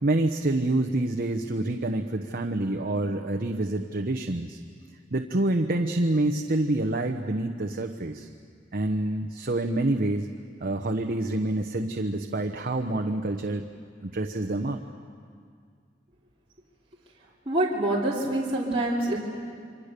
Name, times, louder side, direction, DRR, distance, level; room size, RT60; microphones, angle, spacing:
voice 1, 0.0-4.6 5.1-8.3 8.7-10.3 10.6-13.6 14.0-14.8, right 2 dB, 50° right, 4 dB, 1.0 m, -27 dB
voice 2, 17.4-19.2, right 1 dB, 30° right, -6 dB, 3.2 m, -26 dB
28.5 x 24.0 x 6.8 m, 2.1 s
head